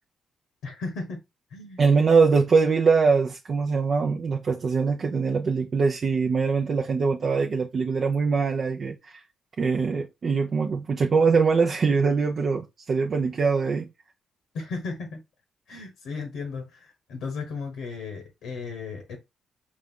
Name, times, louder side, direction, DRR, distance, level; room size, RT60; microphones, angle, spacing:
voice 1, 0.6-1.2 1.5-1.8 14.5-15.2 15.7-19.2, left 4 dB, 85° left, 1.0 m, -35 dB
voice 2, 1.8-9.2 9.6-13.9, right 5 dB, 50° right, 0.5 m, -23 dB
4.1 x 2.4 x 3.6 m
cardioid pair, 70°, 0 cm